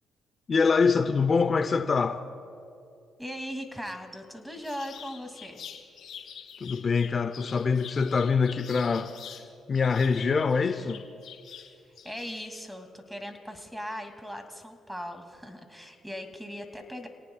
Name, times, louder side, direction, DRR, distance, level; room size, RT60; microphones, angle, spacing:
voice 1, 0.5-2.2 6.6-9.1 9.7-11.0, left 5 dB, 45° left, 0.7 m, -24 dB
voice 2, 3.2-5.6 12.0-17.1, equal, 5° right, 2.5 m, -39 dB
sound 1, 4.6-9.4 9.7-12.6, left 8 dB, 65° left, 2.7 m, -45 dB
29.5 x 18.5 x 2.4 m
supercardioid pair, 55°, 0 cm